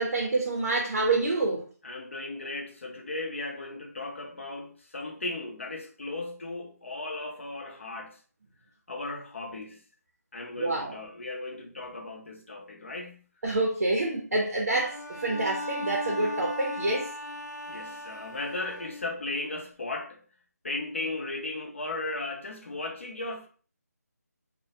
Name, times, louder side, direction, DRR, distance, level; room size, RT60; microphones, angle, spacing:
voice 1, 0.0-1.6 10.6-10.9 13.4-15.0 15.2-17.1, right 2 dB, 55° right, 0.6 m, -27 dB
voice 2, 1.8-8.2 8.9-9.8 10.3-13.3 17.7-20.2 20.6-23.5, left 2 dB, 45° left, 0.5 m, -36 dB
Bowed string instrument, 14.7-19.3, left 1 dB, 90° left, 0.6 m, -37 dB
2.1 x 2.1 x 2.7 m
figure-of-eight pair, 175°, 9 cm